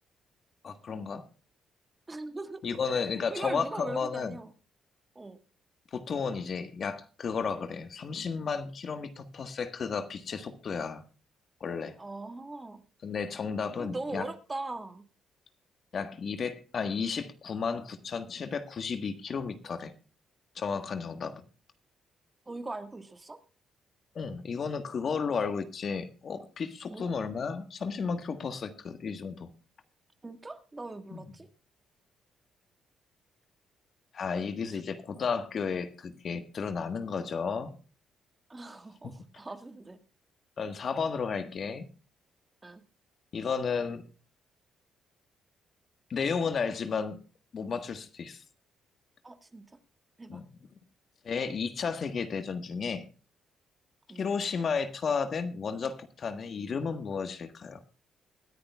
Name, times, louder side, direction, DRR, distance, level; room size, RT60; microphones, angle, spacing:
voice 1, 0.6-1.2 2.6-4.4 5.9-11.0 11.6-12.0 13.0-14.3 15.9-19.9 20.5-21.4 24.1-29.5 31.1-31.3 34.1-37.8 39.0-39.1 40.6-41.8 43.3-44.0 46.1-47.2 47.5-48.4 50.3-50.4 51.2-53.1 54.1-57.8, left 5 dB, 50° left, 9 dB, 1.4 m, -33 dB
voice 2, 2.1-2.6 2.9-4.5 5.2-5.4 12.0-12.8 13.8-15.0 22.5-23.4 26.9-27.1 30.2-31.5 34.3-34.4 34.7-34.8 38.5-40.0 42.6-42.8 49.2-49.6 50.2-50.4 54.1-54.3, right 2 dB, 20° right, 8 dB, 1.7 m, -40 dB
22.5 x 10.0 x 2.3 m, 0.34 s
cardioid pair, 90°, 0 cm